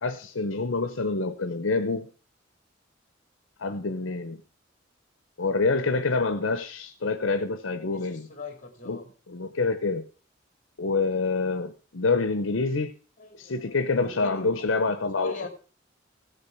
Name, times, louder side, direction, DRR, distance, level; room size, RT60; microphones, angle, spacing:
voice 1, 0.0-2.1 3.6-4.4 5.4-8.3 8.9-10.0 10.8-12.9 13.4-15.4, left 3 dB, 75° left, 0.9 m, -27 dB
voice 2, 7.9-9.1 13.2-14.7 15.2-15.5, left 3 dB, 40° left, 2.6 m, -41 dB
16.0 x 6.7 x 5.8 m
head